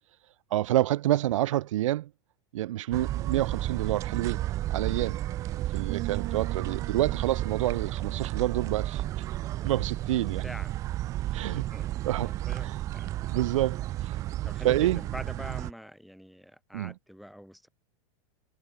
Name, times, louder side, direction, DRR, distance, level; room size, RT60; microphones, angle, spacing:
voice 1, 0.5-2.1 2.5-4.4 4.7-5.2 5.7-9.0 9.6-10.4 11.3-11.6 12.0-12.3 12.6-12.8 13.3-14.2 14.6-15.0 16.7-16.9, right 14 dB, 75° right, 1.1 m, -28 dB
sound 1, 2.9-15.7, right 14 dB, 20° right, 0.5 m, -32 dB
sound 2, 5.9-9.6, right 40 dB or more, 35° right, 1.0 m, -43 dB
voice 2, 11.3-13.1 14.4-17.7, equal, ahead, 6.2 m, -45 dB
supercardioid pair, 180°, 16 cm